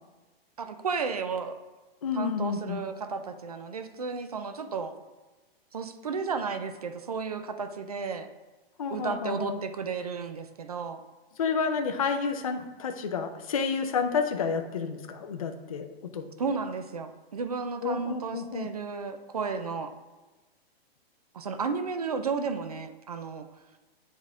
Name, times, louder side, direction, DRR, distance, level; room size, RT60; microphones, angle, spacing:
voice 1, 0.6-1.6 2.1-4.9 5.7-8.3 8.9-11.0 16.4-19.9 21.3-23.5, right 5 dB, 40° right, 8 dB, 0.4 m, -33 dB
voice 2, 2.0-2.8 8.8-9.6 11.4-16.2 17.8-18.7, left 5 dB, 35° left, 6 dB, 0.4 m, -30 dB
8.6 x 3.6 x 3.6 m, 1.2 s
hypercardioid pair, 180°, 31 cm